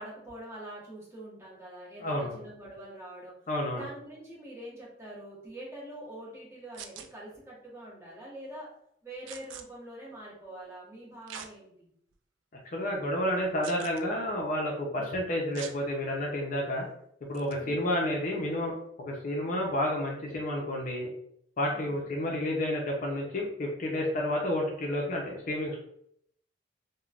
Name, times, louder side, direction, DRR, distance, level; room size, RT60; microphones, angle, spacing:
voice 1, 0.0-3.4 3.7-8.7 9.0-11.9 14.9-15.3 17.5-17.9 21.7-22.3, right 1 dB, 15° right, -6 dB, 1.1 m, -45 dB
voice 2, 2.0-2.3 3.5-3.8 12.7-16.8 17.3-18.7 19.0-21.1 21.6-25.8, left 1 dB, 45° left, 0 dB, 0.5 m, -30 dB
sound 1, 6.7-7.1 9.3-9.6 11.3-11.5 12.1-12.2 13.6-14.0 15.5-15.8 17.3-17.5, right 8 dB, 80° right, 0.3 m, -43 dB
3.2 x 2.1 x 2.4 m, 0.70 s
head